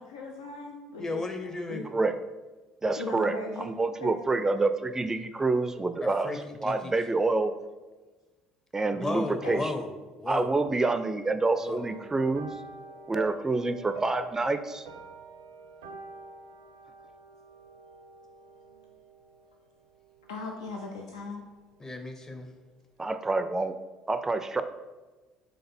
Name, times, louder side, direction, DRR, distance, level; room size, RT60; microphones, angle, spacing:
voice 1, 0.0-1.2 1.7-1.9 3.0-3.7 4.0-4.2 9.4-9.6 20.3-21.4, left 2 dB, 85° left, 0 dB, 0.4 m, -38 dB
voice 2, 1.0-1.9 6.0-6.9 8.9-10.6 11.6-11.9 21.8-22.5, left 2 dB, 20° left, 5 dB, 0.7 m, -35 dB
voice 3, 2.8-6.3 6.6-7.5 8.7-9.7 10.3-12.5 13.1-14.8 23.0-23.7 24.1-24.6, right 3 dB, 20° right, 10 dB, 0.4 m, -27 dB
sound 1, 11.8-21.3 21.6-22.0 22.4-22.5, right 4 dB, 80° right, 0.5 m, -46 dB
3.9 x 3.2 x 4.3 m, 1.2 s
hypercardioid pair, 60°, 3 cm